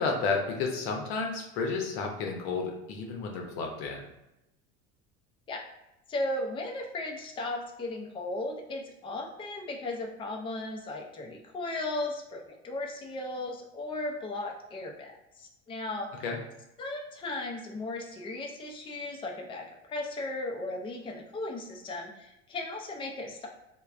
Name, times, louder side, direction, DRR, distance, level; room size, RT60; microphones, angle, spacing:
voice 1, 0.0-4.0 16.2-16.4, left 4 dB, 85° left, 1 dB, 0.7 m, -31 dB
voice 2, 6.1-16.1 16.8-23.5, left 2 dB, 15° left, 0 dB, 0.4 m, -36 dB
3.2 x 2.1 x 2.4 m, 0.90 s
supercardioid pair, 105°, 31 cm